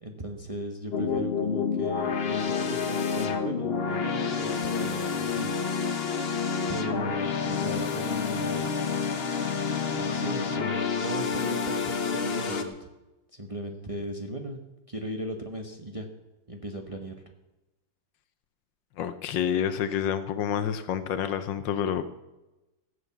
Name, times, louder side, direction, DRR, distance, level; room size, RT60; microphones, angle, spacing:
voice 1, 0.0-5.5 6.7-9.0 9.9-12.9 13.3-14.6 14.9-16.1 16.5-17.1, right 1 dB, 20° right, 3 dB, 1.0 m, -37 dB
sound 1, 0.9-12.6, left 6 dB, 40° left, 1.0 m, -29 dB
voice 2, 19.0-22.0, left 9 dB, 75° left, 12 dB, 1.5 m, -28 dB
14.5 x 8.0 x 7.2 m, 1.0 s
omnidirectional pair, 2.0 m